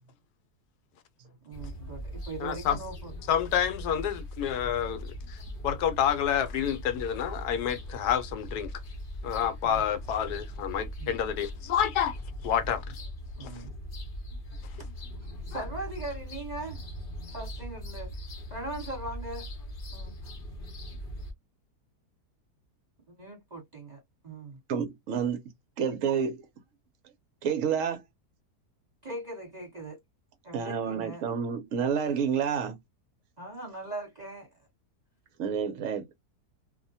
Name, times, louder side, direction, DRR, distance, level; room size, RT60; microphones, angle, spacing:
voice 1, 1.4-3.1 9.6-9.8 11.0-11.1 13.4-13.7 15.5-16.8 17.3-18.1 18.5-19.5 19.9-20.1 23.2-24.6 29.0-30.0 30.4-31.2 33.4-34.5, right 2 dB, 30° right, 1.1 m, -40 dB
sound 1, 1.5-21.3, equal, 45° left, 0.7 m, -40 dB
voice 2, 2.4-2.8 3.3-5.4 5.6-8.7 9.2-12.1 12.4-12.8 13.4-13.5 15.5-15.6, left 9 dB, 75° left, 1.1 m, -28 dB
voice 3, 24.7-25.4 25.8-26.4 27.4-28.0 30.5-32.8 35.4-36.1, right 7 dB, 65° right, 0.9 m, -29 dB
2.7 x 2.1 x 2.6 m
omnidirectional pair, 1.7 m